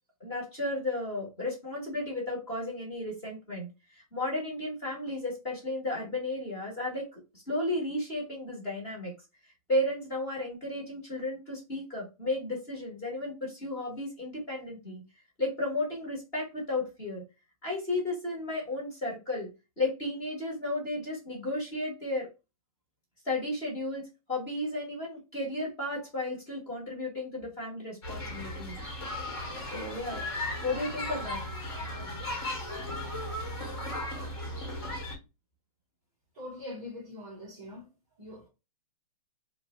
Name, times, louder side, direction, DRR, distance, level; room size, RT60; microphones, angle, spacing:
voice 1, 0.2-3.7 3.9-9.1 9.7-15.0 15.4-17.2 17.6-19.5 19.8-22.3 23.2-24.0 24.3-28.8 29.7-30.2 30.6-31.4, left 2 dB, 15° left, 1.0 m, -33 dB
sound 1, 28.0-35.2, left 1 dB, 40° left, 1.1 m, -36 dB
voice 2, 36.3-37.9 38.2-38.5, left 1 dB, 15° right, 0.4 m, -43 dB
3.1 x 2.0 x 2.9 m
hypercardioid pair, 175°, 19 cm